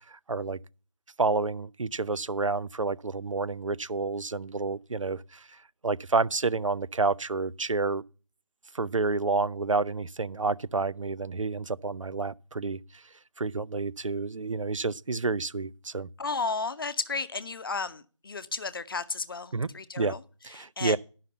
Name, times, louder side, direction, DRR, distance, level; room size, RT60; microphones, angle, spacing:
voice 1, 0.1-0.6 1.2-8.0 8.7-13.0 13.4-16.1 19.5-19.7 20.0-20.1 20.4-21.0, right 3 dB, 85° right, 0.5 m, -29 dB
voice 2, 16.2-20.2 20.6-21.0, left 4 dB, 45° left, 0.7 m, -33 dB
10.5 x 5.7 x 6.9 m
figure-of-eight pair, 155°, 16 cm